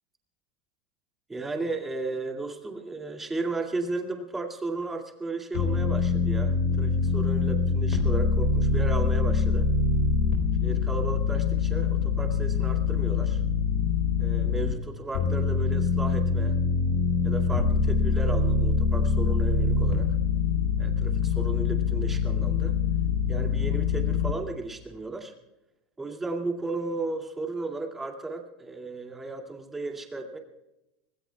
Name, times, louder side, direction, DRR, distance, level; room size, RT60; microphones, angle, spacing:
voice 1, 1.3-9.7 10.6-13.4 14.2-16.6 17.2-20.2 20.8-22.8 23.3-25.3 26.0-30.4, right 3 dB, 10° right, 2 dB, 2.4 m, -34 dB
sound 1, 5.5-14.7 15.1-24.3, left 5 dB, 65° left, 4.0 m, -24 dB
25.5 x 19.5 x 2.4 m, 0.93 s
supercardioid pair, 155°, 2 cm